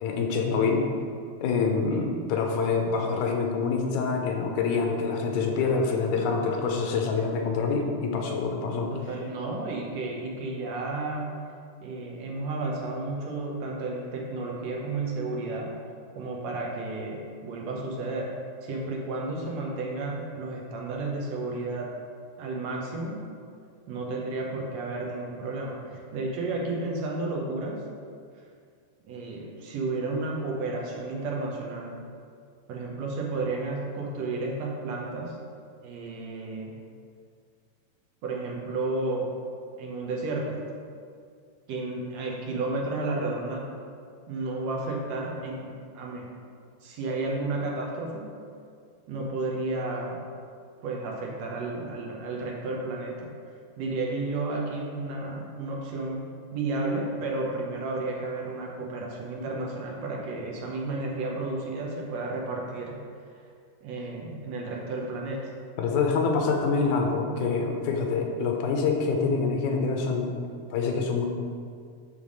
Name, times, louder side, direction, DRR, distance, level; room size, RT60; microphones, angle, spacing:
voice 1, 0.0-0.9 1.4-8.9 65.8-70.3 70.7-71.3, left 4 dB, 90° left, 2 dB, 2.3 m, -26 dB
voice 2, 8.9-11.4 11.8-15.7 16.2-18.3 18.6-21.9 22.4-23.2 23.9-27.8 29.1-32.0 32.7-35.4 35.8-36.8 38.2-39.3 39.8-40.7 41.7-43.7 44.3-46.3 46.8-48.3 49.1-50.2 50.8-53.3 53.8-63.0 63.8-65.5, right 2 dB, 70° right, -1 dB, 2.0 m, -32 dB
7.1 x 3.5 x 6.2 m, 2.2 s
omnidirectional pair, 3.3 m